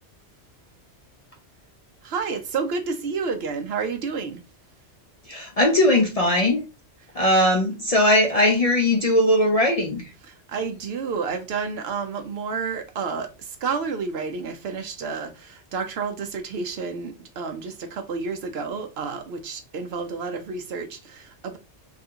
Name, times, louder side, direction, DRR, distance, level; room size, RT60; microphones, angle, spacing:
voice 1, 2.0-4.4 7.1-7.5 10.2-21.6, right 5 dB, 65° right, 0.8 m, -30 dB
voice 2, 5.3-6.6 7.1-10.1, left 1 dB, 45° left, 0.5 m, -19 dB
3.5 x 2.4 x 2.7 m
omnidirectional pair, 1.2 m